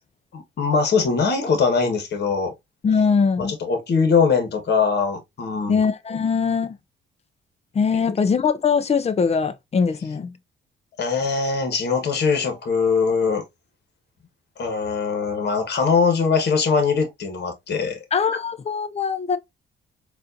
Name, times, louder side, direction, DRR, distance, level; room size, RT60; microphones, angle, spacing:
voice 1, 0.3-2.5 3.4-5.8 8.0-8.1 11.0-13.4 14.6-18.0, left 5 dB, 55° left, 1.3 m, -21 dB
voice 2, 2.8-3.5 5.7-6.8 7.7-10.3 18.1-19.4, left 5 dB, 30° left, 0.5 m, -21 dB
4.1 x 2.6 x 2.6 m
cardioid pair, 90°, 20 cm